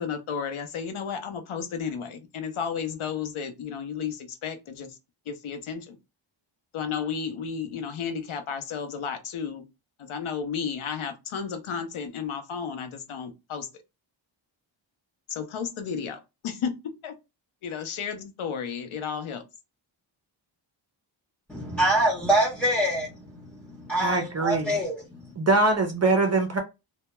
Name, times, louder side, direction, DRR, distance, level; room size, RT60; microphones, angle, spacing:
voice 1, 0.0-5.0 5.3-6.0 6.7-9.6 10.0-13.7 15.3-16.8 17.0-17.1 17.6-19.4, left 6 dB, 90° left, 0.7 m, -33 dB
voice 2, 21.5-25.3, right 1 dB, 5° left, 0.7 m, -25 dB
voice 3, 24.0-24.7 25.4-26.6, right 3 dB, 35° right, 0.5 m, -23 dB
2.2 x 2.1 x 2.9 m
wide cardioid pair, 120°, 47 cm